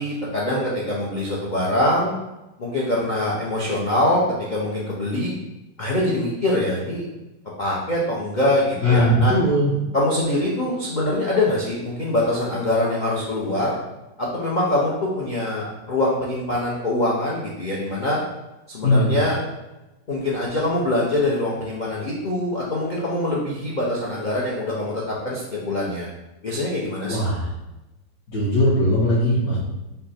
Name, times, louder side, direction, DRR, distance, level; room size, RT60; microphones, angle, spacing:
voice 1, 0.0-2.1 2.6-5.3 5.8-7.0 7.6-9.3 9.9-13.8 14.2-18.2 18.7-19.4 20.1-26.1 26.4-27.2, left 1 dB, 80° left, -5 dB, 0.4 m, -24 dB
voice 2, 8.8-9.7 18.8-19.1 27.1-27.5 28.3-29.6, equal, 60° left, -10 dB, 1.5 m, -19 dB
5.6 x 2.2 x 4.2 m, 1.0 s
omnidirectional pair, 1.9 m